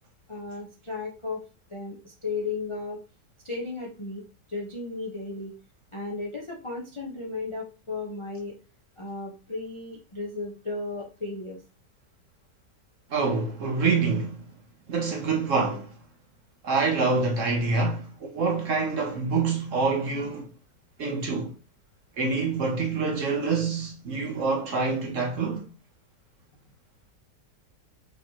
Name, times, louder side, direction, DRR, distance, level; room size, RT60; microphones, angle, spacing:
voice 1, 0.3-1.4 1.7-3.0 3.4-4.2 4.5-5.5 5.9-8.5 9.0-11.6, left 3 dB, 35° left, 0.5 m, -34 dB
voice 2, 13.1-14.4 14.9-15.9 16.6-20.5 21.0-21.5 22.2-25.6, right 4 dB, 55° right, 1.0 m, -26 dB
5.1 x 3.1 x 2.8 m
omnidirectional pair, 1.9 m